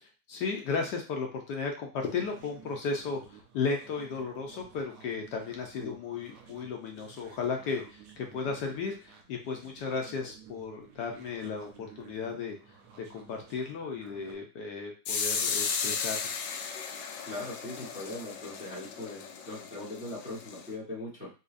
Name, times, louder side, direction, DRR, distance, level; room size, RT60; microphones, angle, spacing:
voice 1, 0.0-12.6 13.0-16.2, left 5 dB, 70° left, 2 dB, 1.2 m, -35 dB
sound 1, 2.0-14.3, right 7 dB, 70° right, 1.1 m, -54 dB
sound 2, 15.0-20.7, left 6 dB, 90° left, 1.4 m, -35 dB
voice 2, 17.3-21.3, left 2 dB, 10° right, -6 dB, 0.8 m, -40 dB
4.0 x 2.8 x 2.5 m, 0.32 s
omnidirectional pair, 2.0 m